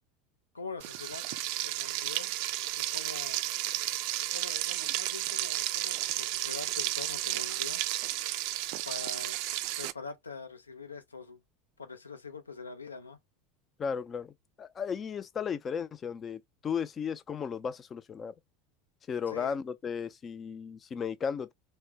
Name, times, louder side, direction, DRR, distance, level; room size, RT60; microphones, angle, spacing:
voice 1, 0.5-1.3 1.6-2.3 2.8-3.4 4.3-7.8 8.9-9.4 9.8-11.4 11.8-13.2 19.3-19.6, left 4 dB, 85° left, 0.5 m, -44 dB
Frying (food), 0.8-9.9, right 16 dB, 55° right, 0.3 m, -33 dB
voice 2, 13.8-14.3 14.6-18.3 19.1-21.5, left 7 dB, 30° left, 0.3 m, -35 dB
3.3 x 2.1 x 3.2 m
figure-of-eight pair, 80°, 0 cm